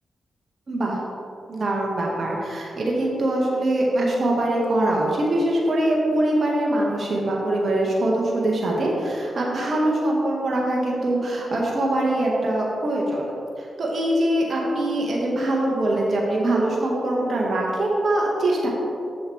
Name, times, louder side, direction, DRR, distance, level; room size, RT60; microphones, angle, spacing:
voice 1, 0.7-1.0 1.5-13.2 13.8-18.7, right 1 dB, 55° right, -3 dB, 1.8 m, -23 dB
7.7 x 7.1 x 3.5 m, 2.5 s
supercardioid pair, 40°, 0 cm